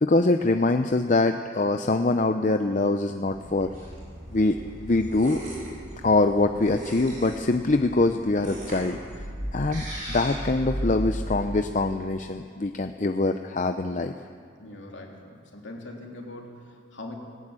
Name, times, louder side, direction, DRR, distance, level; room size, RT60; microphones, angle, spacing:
voice 1, 0.0-3.7 4.3-4.6 4.8-5.4 6.0-9.0 9.5-14.1, left 2 dB, 35° left, 7 dB, 0.6 m, -24 dB
sound 1, 3.2-11.4, equal, 40° right, 7.8 m, -36 dB
voice 2, 14.6-17.2, left 2 dB, 60° left, 0 dB, 3.1 m, -41 dB
18.0 x 18.0 x 8.9 m, 2.1 s
head